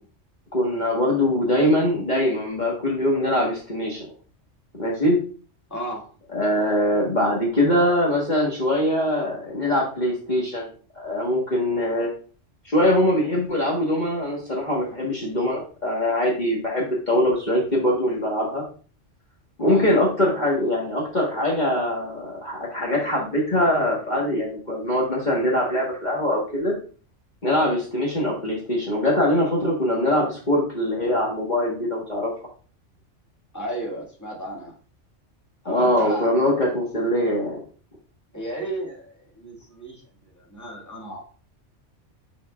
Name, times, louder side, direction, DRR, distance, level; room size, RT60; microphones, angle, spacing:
voice 1, 0.5-4.1 4.8-5.2 6.3-10.7 10.9-12.1 12.6-18.6 19.6-26.7 27.4-32.3 35.6-37.6, left 1 dB, 35° left, -4 dB, 1.6 m, -22 dB
voice 2, 5.7-6.1 19.7-20.0 33.5-34.7 35.6-36.3 38.3-40.0 40.4-41.2, equal, 15° left, -3 dB, 1.9 m, -33 dB
7.0 x 6.0 x 2.4 m, 0.39 s
omnidirectional pair, 1.3 m